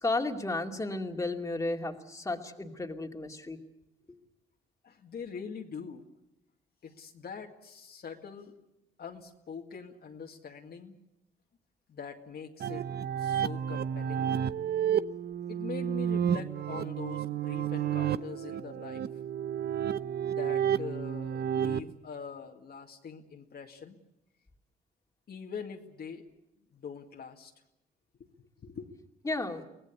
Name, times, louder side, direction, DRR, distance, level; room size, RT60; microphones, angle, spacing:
voice 1, 0.0-3.6 29.2-29.6, left 2 dB, 15° left, 2 dB, 2.5 m, -33 dB
voice 2, 4.8-6.0 6.8-8.5 9.0-10.9 11.9-12.8 13.2-14.3 15.5-19.2 20.3-24.0 25.3-26.3 26.7-27.5 28.2-28.3 28.6-28.9, left 6 dB, 50° left, 2 dB, 2.1 m, -43 dB
sound 1, 12.6-21.8, right 9 dB, 55° right, 0.7 m, -31 dB
24.0 x 18.0 x 8.4 m, 0.89 s
cardioid pair, 90°, 20 cm